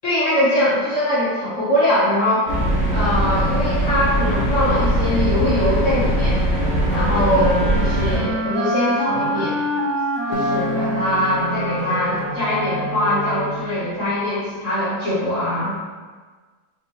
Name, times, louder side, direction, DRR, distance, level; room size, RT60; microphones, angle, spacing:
voice 1, 0.0-2.4 2.9-6.4 6.9-9.6 10.3-15.7, left 1 dB, 55° left, -10 dB, 0.9 m, -22 dB
sound 1, 2.5-8.2, right 1 dB, 15° right, 0.7 m, -20 dB
sound 2, 6.5-13.9, right 1 dB, 75° right, 0.9 m, -26 dB
Acoustic guitar, 10.3-13.5, left 4 dB, 70° left, 1.2 m, -31 dB
4.2 x 3.2 x 2.8 m, 1.4 s
omnidirectional pair, 2.1 m